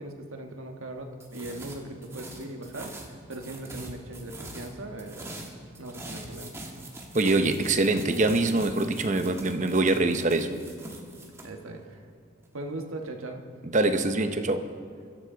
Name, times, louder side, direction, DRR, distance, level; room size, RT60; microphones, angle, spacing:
voice 1, 0.0-5.4 5.8-6.6 11.4-12.0 12.5-13.4, right 2 dB, 85° right, 3 dB, 1.4 m, -39 dB
sound 1, 1.2-4.7 5.0-11.5, right 1 dB, 15° right, 1.3 m, -43 dB
voice 2, 7.1-10.6 13.6-14.7, right 2 dB, 35° right, 8 dB, 0.7 m, -24 dB
21.5 x 12.5 x 3.8 m, 2.3 s
head